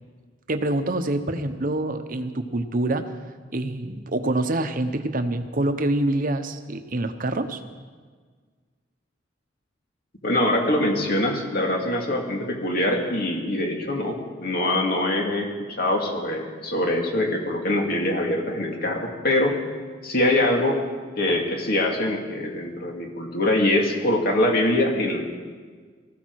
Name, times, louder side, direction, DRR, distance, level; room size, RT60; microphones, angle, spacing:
voice 1, 0.5-3.1 3.5-7.6, right 1 dB, 50° right, 8 dB, 1.0 m, -26 dB
voice 2, 10.2-19.6 20.0-20.8 21.2-25.2, left 1 dB, 55° left, 1 dB, 2.3 m, -23 dB
19.5 x 14.5 x 4.7 m, 1.5 s
head